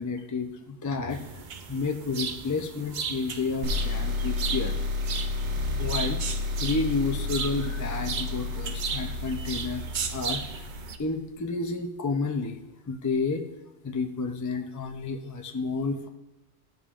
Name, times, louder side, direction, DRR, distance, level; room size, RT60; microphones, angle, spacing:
voice 1, 0.0-4.8 5.8-6.2 6.6-9.9 10.1-10.6 11.0-12.6 12.9-13.4 13.8-16.1, left 4 dB, 25° left, 4 dB, 0.4 m, -31 dB
sound 1, 1.1-11.0, right 6 dB, 55° right, 0.6 m, -35 dB
sound 2, 3.6-11.1, left 3 dB, 90° right, 1.1 m, -31 dB
13.5 x 5.3 x 2.5 m, 0.98 s
omnidirectional pair, 1.1 m